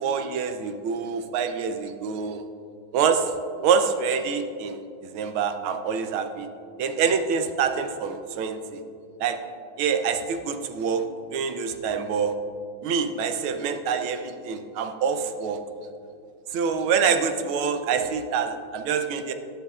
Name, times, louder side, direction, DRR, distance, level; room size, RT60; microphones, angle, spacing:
voice 1, 0.0-2.4 2.9-3.3 3.6-4.8 5.1-6.5 6.8-8.8 9.2-9.4 9.8-11.1 11.3-12.3 12.8-15.6 16.5-19.3, right 6 dB, 80° right, 7 dB, 1.5 m, -26 dB
18.5 x 6.6 x 2.4 m, 2.4 s
omnidirectional pair, 2.3 m